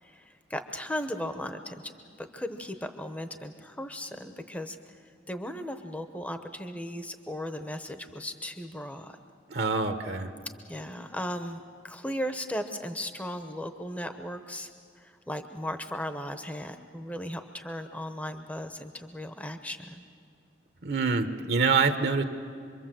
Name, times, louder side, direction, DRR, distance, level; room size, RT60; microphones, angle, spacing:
voice 1, 0.0-5.0 5.3-9.2 10.7-14.7 15.0-20.0, equal, 10° left, 7 dB, 0.9 m, -37 dB
voice 2, 9.5-10.3 20.8-22.2, right 4 dB, 55° right, 8 dB, 1.0 m, -25 dB
25.5 x 23.0 x 7.7 m, 2.4 s
head